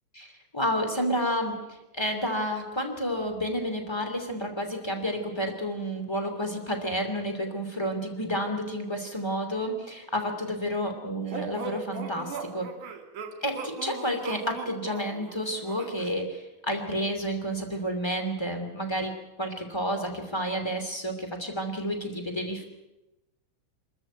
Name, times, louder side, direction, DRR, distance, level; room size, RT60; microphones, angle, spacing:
voice 1, 0.1-12.7 13.4-22.6, equal, 10° left, 5 dB, 1.4 m, -30 dB
sound 1, 11.3-16.1, right 5 dB, 50° right, 3.4 m, -38 dB
26.0 x 14.0 x 9.1 m, 1.0 s
omnidirectional pair, 5.2 m